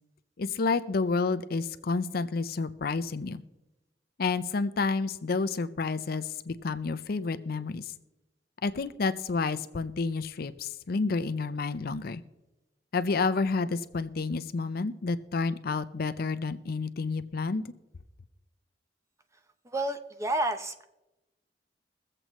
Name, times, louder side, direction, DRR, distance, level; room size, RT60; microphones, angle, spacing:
voice 1, 0.4-3.4 4.2-7.9 8.6-12.2 12.9-17.6, left 4 dB, 60° left, 12 dB, 0.5 m, -30 dB
voice 2, 19.7-20.8, right 2 dB, 15° right, 8 dB, 0.7 m, -30 dB
22.5 x 7.7 x 3.1 m, 1.0 s
head